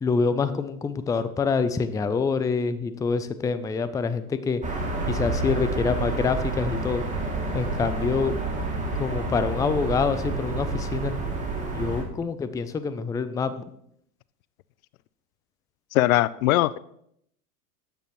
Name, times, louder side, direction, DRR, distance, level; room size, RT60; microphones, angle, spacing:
voice 1, 0.0-4.6 5.1-7.0 7.5-8.4 9.0-11.2 11.7-13.6, left 5 dB, 10° left, 12 dB, 0.4 m, -26 dB
sound 1, 4.6-12.0, right 3 dB, 15° right, 2.7 m, -29 dB
voice 2, 15.9-16.8, left 16 dB, 65° left, 19 dB, 0.5 m, -21 dB
13.0 x 9.1 x 3.1 m, 0.71 s
hypercardioid pair, 90°, 46 cm